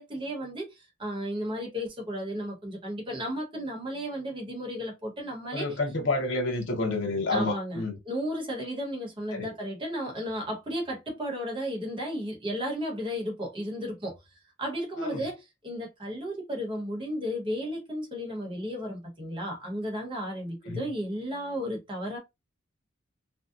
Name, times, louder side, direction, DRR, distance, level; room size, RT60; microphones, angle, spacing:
voice 1, 0.0-5.8 7.3-14.2 14.6-22.2, equal, 25° right, 0.9 m, -34 dB
voice 2, 5.5-8.0 9.3-9.5 15.0-15.2 20.7-20.9, left 2 dB, 75° left, 0.7 m, -29 dB
2.7 x 2.1 x 2.4 m
head